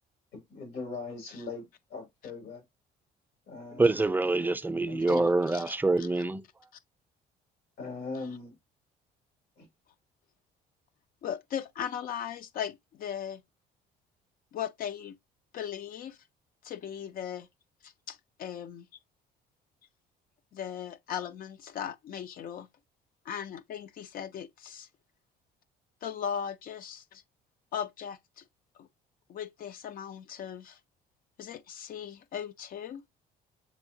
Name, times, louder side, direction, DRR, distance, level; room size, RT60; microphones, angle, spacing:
voice 1, 0.3-1.6 1.9-2.6 3.5-3.9 4.9-5.3 7.8-8.5 9.6-9.7, left 3 dB, 85° left, 3.1 m, -40 dB
voice 2, 3.7-6.4, right 2 dB, 10° right, 0.4 m, -26 dB
voice 3, 11.2-13.4 14.5-15.2 15.5-16.2 16.6-17.5 17.8-18.9 20.5-22.7 23.3-24.9 26.0-27.0 27.7-28.4 28.8-28.9 29.3-30.8 31.4-33.0, left 9 dB, 60° left, 0.5 m, -38 dB
7.2 x 2.8 x 2.6 m
cardioid pair, 110°, 17 cm